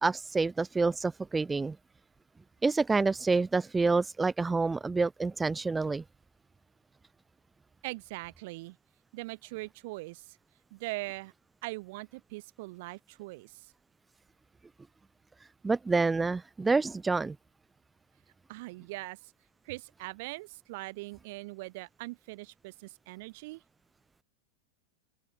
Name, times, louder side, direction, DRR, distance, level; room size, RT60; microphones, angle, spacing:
voice 1, 0.0-1.8 2.6-6.0 15.6-17.4, right 3 dB, 10° right, 0.3 m, -28 dB
voice 2, 7.8-8.8 9.1-10.4 10.7-11.3 11.6-13.7 18.5-19.3 19.6-23.6, right 23 dB, 50° right, 0.8 m, -41 dB
open air
figure-of-eight pair, 90°, 0 cm